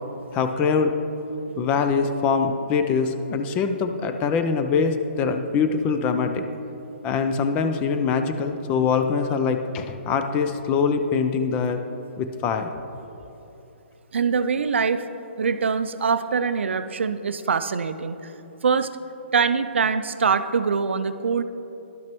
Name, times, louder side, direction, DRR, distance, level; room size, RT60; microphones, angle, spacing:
voice 1, 0.3-1.0 1.6-6.4 7.0-11.8 12.2-12.7, left 5 dB, 20° left, 7 dB, 0.4 m, -23 dB
voice 2, 14.1-15.0 15.4-18.3 18.6-18.9 19.3-21.4, right 5 dB, 80° right, 11 dB, 0.4 m, -23 dB
11.5 x 5.8 x 3.0 m, 3.0 s
hypercardioid pair, 150°, 6 cm